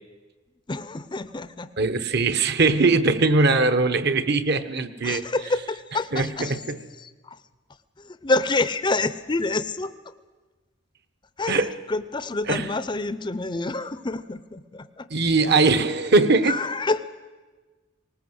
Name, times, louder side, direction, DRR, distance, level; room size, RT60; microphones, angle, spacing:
voice 1, 0.7-1.9 5.0-6.6 7.0-7.4 8.0-10.1 11.4-15.1 16.4-17.0, left 3 dB, 20° left, 13 dB, 0.6 m, -28 dB
voice 2, 1.8-5.2 6.1-6.8 11.5-11.7 12.5-12.7 15.1-16.6, right 3 dB, 50° right, 12 dB, 1.1 m, -21 dB
19.5 x 19.0 x 7.9 m, 1.3 s
head